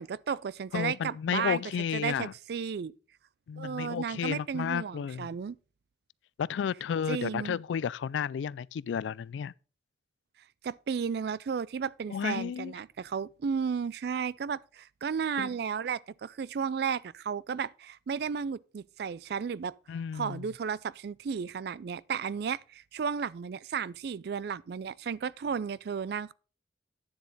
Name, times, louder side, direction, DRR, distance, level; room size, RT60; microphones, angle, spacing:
voice 1, 0.0-1.6 1.9-2.9 3.6-5.6 7.1-7.6 10.6-19.7 20.1-26.3, right 6 dB, 60° right, 0.3 m, -33 dB
voice 2, 0.7-2.3 3.5-5.3 6.4-9.5 12.1-12.7 15.4-15.5 19.9-20.5, left 7 dB, 90° left, 0.3 m, -32 dB
9.8 x 7.1 x 4.0 m
head